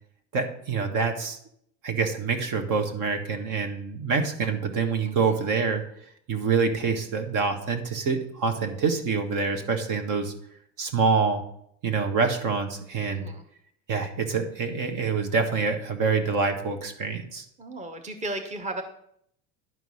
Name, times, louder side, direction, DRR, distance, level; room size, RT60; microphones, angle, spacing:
voice 1, 0.3-1.4 1.8-5.8 6.3-10.3 10.8-11.4 11.8-13.3 13.9-17.4, right 5 dB, 55° right, 6 dB, 1.6 m, -26 dB
voice 2, 5.0-5.4 13.1-13.4 17.6-18.8, right 2 dB, 20° right, 5 dB, 1.2 m, -35 dB
11.0 x 4.6 x 5.7 m, 0.70 s
supercardioid pair, 95°, 39 cm